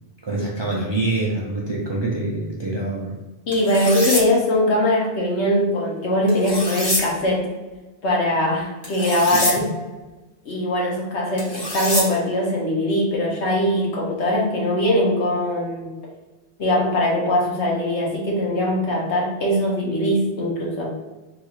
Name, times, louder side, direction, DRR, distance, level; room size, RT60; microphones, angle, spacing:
voice 1, 0.2-3.1 9.6-9.7, right 2 dB, 45° right, -4 dB, 0.3 m, -25 dB
voice 2, 3.5-7.5 8.0-9.7 10.4-15.9 16.6-20.9, left 1 dB, 80° left, -2 dB, 1.2 m, -21 dB
sound 1, 3.5-4.2 6.3-7.0 8.8-9.5 11.4-12.0, left 1 dB, 20° left, 1.2 m, -25 dB
3.6 x 2.3 x 3.0 m, 1.2 s
omnidirectional pair, 1.1 m